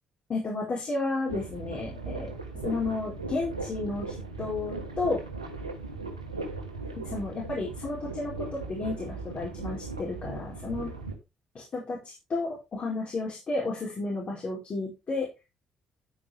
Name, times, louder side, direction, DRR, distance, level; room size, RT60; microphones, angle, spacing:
voice 1, 0.3-2.3 2.6-5.2 7.0-11.0 11.5-15.3, left 3 dB, 40° left, -3 dB, 4.6 m, -32 dB
sound 1, 1.3-11.1, right 3 dB, 90° right, 1.4 m, -38 dB
10.5 x 8.6 x 3.4 m, 0.26 s
figure-of-eight pair, 45°, 3 cm